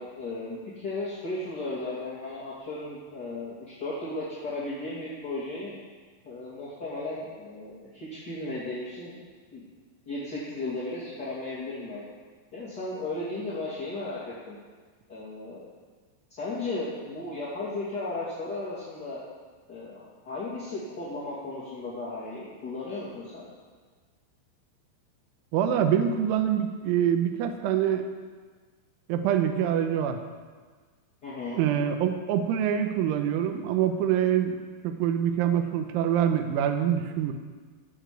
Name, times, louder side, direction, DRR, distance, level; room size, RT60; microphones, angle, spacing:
voice 1, 0.0-5.7 6.2-9.2 9.5-9.6 10.1-12.0 12.5-14.2 14.4-14.6 15.1-15.6 16.4-19.2 19.7-23.5 31.2-31.6, left 2 dB, 30° left, -10 dB, 2.0 m, -35 dB
voice 2, 25.5-28.1 29.1-30.2 31.6-34.6 34.8-37.3, right 9 dB, 80° right, 6 dB, 3.2 m, -25 dB
16.5 x 7.2 x 7.7 m, 1.5 s
omnidirectional pair, 5.7 m